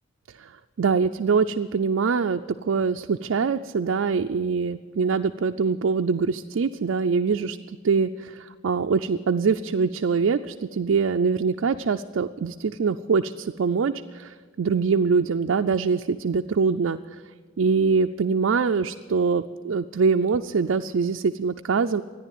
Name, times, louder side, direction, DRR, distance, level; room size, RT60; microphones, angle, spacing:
voice 1, 0.8-17.0 17.6-22.0, right 5 dB, 65° right, 5 dB, 0.4 m, -24 dB
14.0 x 10.0 x 9.2 m, 1.5 s
head